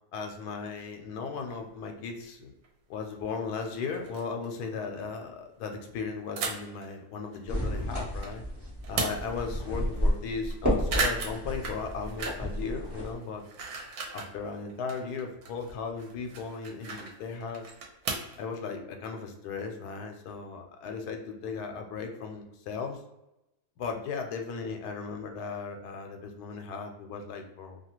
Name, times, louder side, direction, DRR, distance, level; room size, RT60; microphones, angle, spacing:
voice 1, 0.1-2.5 2.9-8.4 8.9-13.4 14.1-17.6 18.4-23.0 23.8-27.8, left 5 dB, 85° left, 4 dB, 1.1 m, -36 dB
sound 1, 1.4-1.5 2.6-2.7 3.2-3.3 3.6-3.7 3.9-4.5 6.4-6.8 7.3-8.3 8.7-9.5 9.9-10.0 10.2-10.5 10.8-12.6 12.9-14.3 14.7-18.4, right 4 dB, 75° right, 1.1 m, -35 dB
sound 2, 7.5-13.1, equal, 10° right, 1.0 m, -31 dB
2.7 x 2.3 x 2.9 m, 0.91 s
omnidirectional pair, 1.7 m